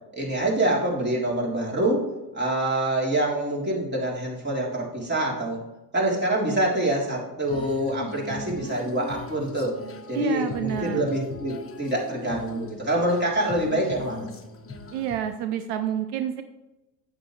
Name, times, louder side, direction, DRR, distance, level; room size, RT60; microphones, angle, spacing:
voice 1, 0.1-2.1 2.3-5.6 5.9-9.8 10.1-14.3, right 1 dB, 20° right, -3 dB, 3.4 m, -26 dB
Female singing, 7.4-15.2, left 3 dB, 30° left, 1.3 m, -39 dB
voice 2, 10.1-11.1 14.9-16.4, right 9 dB, 75° right, 9 dB, 0.8 m, -28 dB
8.6 x 8.3 x 3.2 m, 1.0 s
hypercardioid pair, 75°, 48 cm